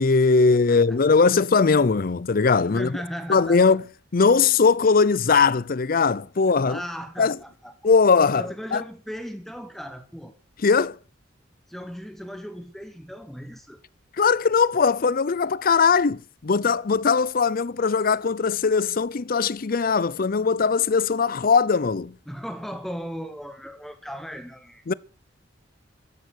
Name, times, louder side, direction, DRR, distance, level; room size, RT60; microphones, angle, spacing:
voice 1, 0.0-3.0 3.3-3.8 4.1-6.8 7.2-7.4 7.8-8.5 8.7-8.8 10.6-11.0 14.2-22.2 24.9-25.0, left 5 dB, 50° left, 0.6 m, -20 dB
voice 2, 0.7-1.1 2.6-3.6 6.4-7.7 8.3-10.3 11.7-13.8 22.3-24.8, equal, ahead, 1.1 m, -37 dB
13.5 x 11.0 x 6.5 m
head